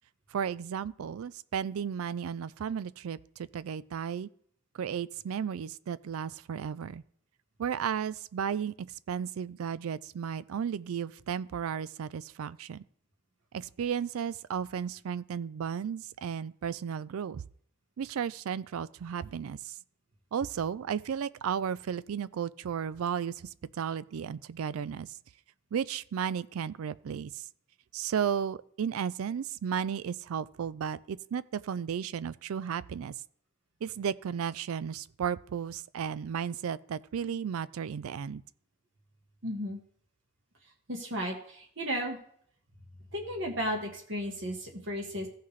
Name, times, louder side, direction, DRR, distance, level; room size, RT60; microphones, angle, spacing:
voice 1, 0.3-4.3 4.8-7.0 7.6-12.8 13.5-17.4 18.0-19.7 20.3-23.3 23.8-25.1 25.7-27.4 27.9-33.1 33.8-38.4, right 7 dB, 80° right, 0.4 m, -34 dB
voice 2, 39.4-39.8 40.9-42.2 43.1-45.3, equal, 60° right, 1.4 m, -34 dB
15.0 x 5.7 x 3.2 m
head